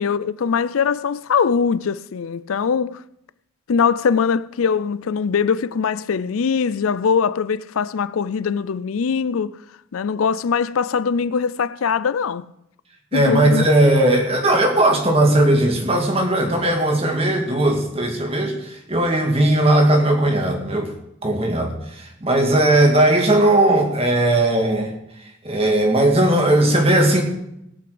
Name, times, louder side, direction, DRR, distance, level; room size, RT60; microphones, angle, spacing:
voice 1, 0.0-3.0 3.7-9.6 9.9-12.5 13.1-13.7, left 6 dB, 80° left, 0.4 m, -21 dB
voice 2, 13.1-20.9 21.2-24.9 25.4-27.2, right 1 dB, 30° right, 2.1 m, -17 dB
17.5 x 6.0 x 7.8 m
head